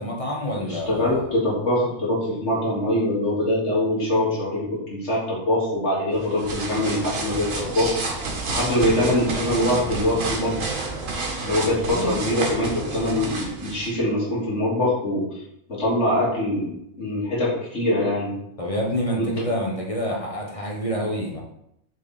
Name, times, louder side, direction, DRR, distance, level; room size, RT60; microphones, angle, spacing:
voice 1, 0.0-1.2 8.9-9.3 11.9-12.4 18.6-21.4, equal, 25° left, -2 dB, 1.0 m, -28 dB
voice 2, 0.6-8.0 8.5-10.6 11.4-15.4 15.7-16.7 17.0-18.3 19.1-19.3, left 1 dB, 50° left, -7 dB, 2.5 m, -23 dB
sound 1, 6.1-13.9, right 3 dB, 65° right, 1.5 m, -30 dB
6.6 x 3.6 x 4.2 m, 0.77 s
omnidirectional pair, 1.5 m